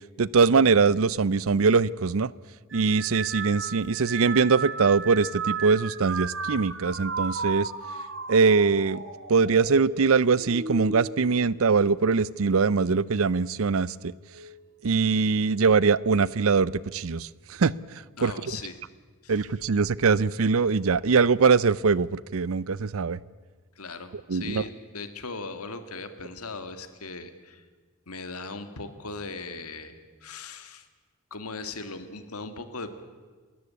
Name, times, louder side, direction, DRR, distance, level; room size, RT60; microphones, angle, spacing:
voice 1, 0.2-2.3 2.7-7.7 8.3-9.0 9.3-14.1 14.8-17.7 18.2-18.3 19.3-23.2 24.3-24.6, right 5 dB, 75° right, 21 dB, 0.6 m, -22 dB
sound 1, 2.7-12.3 12.8-13.3 14.3-14.7, right 4 dB, 55° right, 1.9 m, -35 dB
voice 2, 18.2-18.8 19.2-19.5 23.8-27.7 28.1-30.9 31.3-32.9, left 3 dB, 90° left, 10 dB, 2.0 m, -38 dB
30.0 x 13.5 x 8.4 m, 1.4 s
head